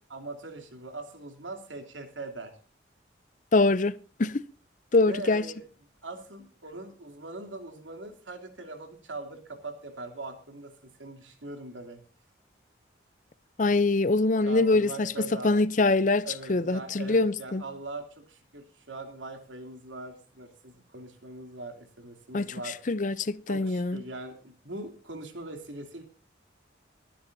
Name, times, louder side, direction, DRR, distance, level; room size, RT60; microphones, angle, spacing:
voice 1, 0.1-2.5 5.0-5.6 6.0-12.0 14.5-15.6 16.2-22.9 23.5-26.0, right 2 dB, 90° right, 3.0 m, -41 dB
voice 2, 3.5-3.9 4.2-4.4 4.9-5.4 13.6-15.1 15.4-17.6 22.3-22.5 22.9-24.0, left 3 dB, 40° left, 0.6 m, -24 dB
22.5 x 10.0 x 2.7 m
head